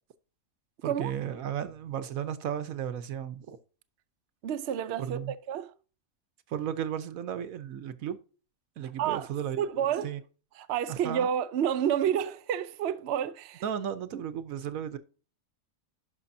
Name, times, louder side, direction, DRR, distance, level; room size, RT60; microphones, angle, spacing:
voice 1, 0.8-3.6 5.0-5.3 6.5-8.2 8.8-10.2 10.9-11.3 13.6-15.0, right 9 dB, 85° right, 1.2 m, -34 dB
voice 2, 4.4-5.7 9.0-9.3 9.6-10.1 10.6-13.6, right 9 dB, 60° right, 0.8 m, -29 dB
11.0 x 5.5 x 2.7 m
omnidirectional pair, 1.4 m